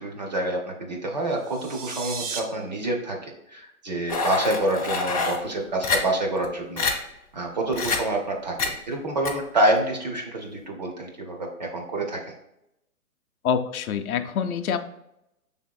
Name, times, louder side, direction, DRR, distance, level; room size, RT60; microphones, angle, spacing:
voice 1, 0.0-6.9 7.3-12.2, right 1 dB, 30° right, 1 dB, 0.5 m, -27 dB
sound 1, 1.3-2.4, right 5 dB, 90° right, 0.9 m, -34 dB
sound 2, 4.1-5.4 5.8-6.0 6.4-6.5 6.8-6.9 7.7-8.0 8.6-8.7 9.3-9.4, left 4 dB, 25° left, 0.4 m, -25 dB
voice 2, 13.4-14.8, left 7 dB, 75° left, 8 dB, 0.6 m, -26 dB
5.6 x 3.5 x 2.2 m, 0.83 s
hypercardioid pair, 160°, 44 cm